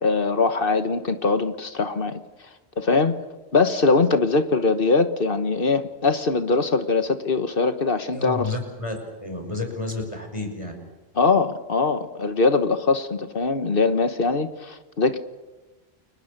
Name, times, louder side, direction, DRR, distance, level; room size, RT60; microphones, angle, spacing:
voice 1, 0.0-2.2 2.8-3.2 3.5-8.5 11.2-15.2, left 4 dB, 60° left, 9 dB, 1.5 m, -22 dB
voice 2, 8.1-8.9 9.2-10.7, left 2 dB, 30° left, 4 dB, 5.9 m, -30 dB
30.0 x 22.5 x 6.8 m, 1.1 s
omnidirectional pair, 1.1 m